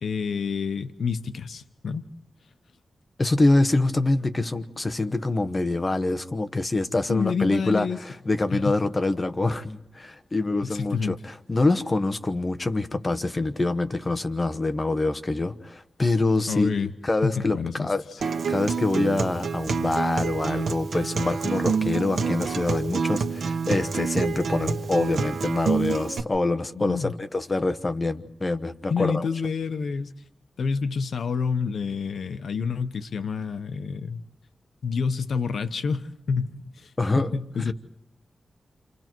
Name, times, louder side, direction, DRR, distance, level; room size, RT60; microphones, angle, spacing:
voice 1, 0.0-2.0 7.1-8.0 8.5-8.7 10.6-11.2 16.5-16.9 17.2-18.2 26.7-27.1 28.9-30.1 30.6-34.2 34.8-37.7, left 5 dB, 75° left, 10 dB, 1.0 m, -28 dB
voice 2, 3.2-18.0 18.5-29.2 37.0-37.3, left 2 dB, 25° left, 9 dB, 1.1 m, -25 dB
Acoustic guitar, 18.2-26.2, right 5 dB, 75° right, 1.4 m, -27 dB
29.0 x 27.5 x 4.6 m, 0.77 s
wide cardioid pair, 150°, 0 cm